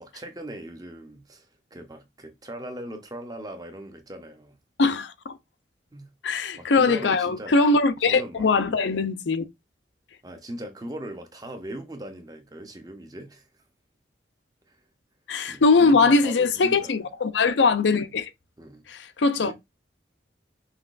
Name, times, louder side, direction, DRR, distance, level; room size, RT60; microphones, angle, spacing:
voice 1, 0.0-4.6 5.9-6.1 6.5-7.6 8.1-8.5 10.2-13.6 14.7-14.8 15.5-17.1 18.6-18.9 19.4-19.5, right 1 dB, 20° right, 0.8 m, -39 dB
voice 2, 4.8-5.3 6.2-9.4 15.3-18.3 18.9-19.5, left 4 dB, 80° left, 0.5 m, -21 dB
5.7 x 3.0 x 2.4 m
head